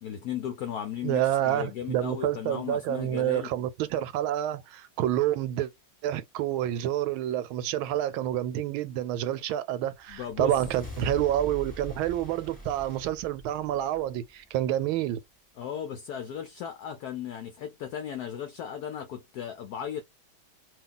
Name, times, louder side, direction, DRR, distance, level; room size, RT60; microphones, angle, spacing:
voice 1, 0.0-3.5 10.1-10.5 15.6-20.0, left 9 dB, 75° left, 0.9 m, -36 dB
voice 2, 1.0-5.7 6.0-15.2, right 12 dB, 85° right, 1.4 m, -28 dB
sound 1, 10.0-14.6, left 1 dB, 5° left, 1.3 m, -43 dB
2.8 x 2.7 x 3.7 m
omnidirectional pair, 2.2 m